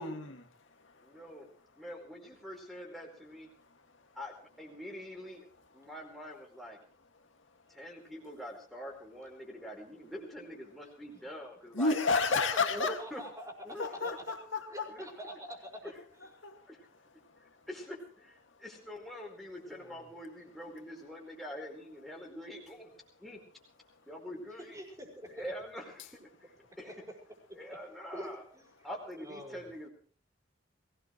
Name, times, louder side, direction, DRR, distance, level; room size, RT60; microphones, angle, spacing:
voice 1, 0.0-1.5 1.7-1.9 3.5-4.2 5.8-5.9 7.0-7.9 11.7-13.0 13.8-14.9 16.4-17.7 18.4-18.6 23.8-24.0 26.6-26.7, left 4 dB, 70° left, 2.3 m, -35 dB
voice 2, 1.0-1.5 1.8-3.5 4.1-5.4 5.7-6.8 7.7-12.0 12.7-13.2 13.6-13.9 14.9-15.1 16.7-16.8 17.7-22.9 23.2-23.4 24.1-24.7 25.2-26.5 26.8-26.9 27.5-28.4 28.8-29.9, equal, ahead, 4.7 m, -44 dB
voice 3, 12.5-13.5 13.8-14.1 14.7-15.9 19.6-20.1 24.6-25.5 26.8-27.2 27.5-27.8 28.1-29.6, equal, 15° right, 5.2 m, -46 dB
22.5 x 18.0 x 3.2 m
head